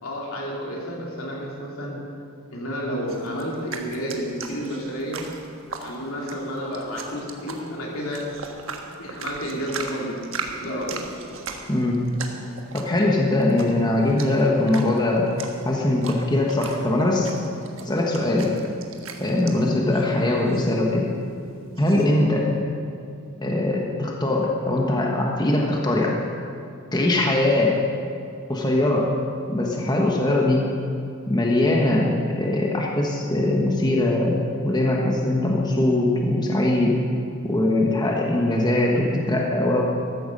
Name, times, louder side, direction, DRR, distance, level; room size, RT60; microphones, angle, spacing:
voice 1, 0.0-2.0 2.5-5.3 5.8-8.3 9.0-11.0, equal, 75° left, -2 dB, 3.0 m, -31 dB
sound 1, 3.1-22.1, right 5 dB, 65° right, 1.4 m, -39 dB
voice 2, 12.7-15.3 15.6-17.3 17.8-18.5 19.2-21.1 21.8-22.5 23.4-26.1 26.9-27.8 28.5-29.1 29.5-30.6 31.3-34.4 34.6-37.0 37.4-39.8, left 1 dB, 20° left, -1 dB, 1.3 m, -21 dB
14.0 x 13.5 x 5.5 m, 2.4 s
head